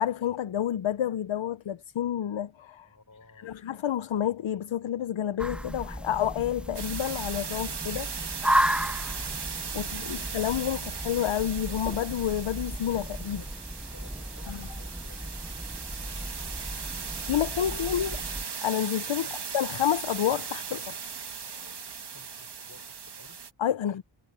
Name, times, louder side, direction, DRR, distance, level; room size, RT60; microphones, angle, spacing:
voice 1, 0.0-2.9 3.4-8.1 9.7-13.4 14.5-14.7 17.3-18.2 18.6-19.3 19.5-21.0 21.5-21.6 23.6-24.0, left 10 dB, 65° left, 0.7 m, -29 dB
voice 2, 2.8-3.6 9.7-10.5 13.3-15.7 17.8-17.9 19.2-19.4 22.0-23.4 23.8-24.0, left 3 dB, 40° left, 4.0 m, -56 dB
sound 1, 5.4-18.4, right 1 dB, ahead, 0.6 m, -34 dB
sound 2, 6.7-23.5, right 6 dB, 55° right, 1.4 m, -38 dB
wide cardioid pair, 105°, 50 cm